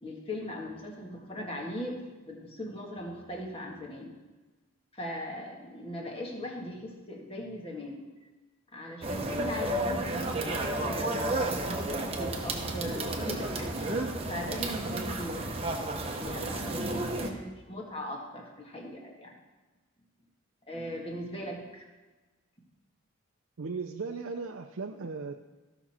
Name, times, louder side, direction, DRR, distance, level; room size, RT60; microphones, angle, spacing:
voice 1, 0.0-4.1 4.9-8.0 8.7-13.7 14.3-15.6 16.0-19.3 20.7-21.9, left 1 dB, 25° left, 0 dB, 1.7 m, -39 dB
sound 1, 9.0-17.3, right 1 dB, 25° right, 0.9 m, -32 dB
voice 2, 23.6-25.3, right 4 dB, 65° right, 3 dB, 0.5 m, -36 dB
15.0 x 6.1 x 4.3 m, 1.2 s
head